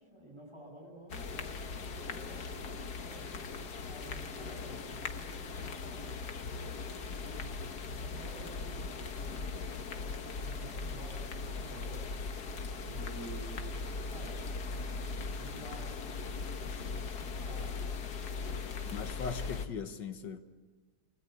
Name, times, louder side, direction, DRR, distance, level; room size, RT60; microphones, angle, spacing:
voice 1, 0.0-15.1 15.4-18.1 18.4-18.8 19.1-19.2, right 1 dB, 15° right, 0 dB, 8.1 m, -52 dB
sound 1, 1.1-19.7, left 4 dB, 65° left, 2.0 m, -39 dB
voice 2, 18.9-20.4, left 5 dB, 85° left, 7 dB, 2.1 m, -39 dB
30.0 x 21.0 x 8.4 m, 1.3 s
omnidirectional pair, 1.9 m